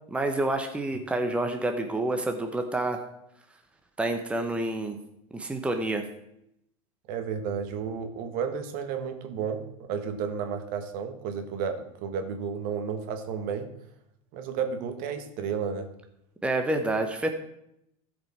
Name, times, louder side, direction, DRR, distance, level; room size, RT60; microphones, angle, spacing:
voice 1, 0.1-3.0 4.0-5.0 5.3-6.0 16.4-17.3, right 2 dB, 5° right, 5 dB, 1.0 m, -28 dB
voice 2, 7.1-13.7 14.3-15.9, right 6 dB, 55° right, 6 dB, 1.5 m, -32 dB
14.0 x 5.2 x 4.4 m, 0.77 s
hypercardioid pair, 100°, 18 cm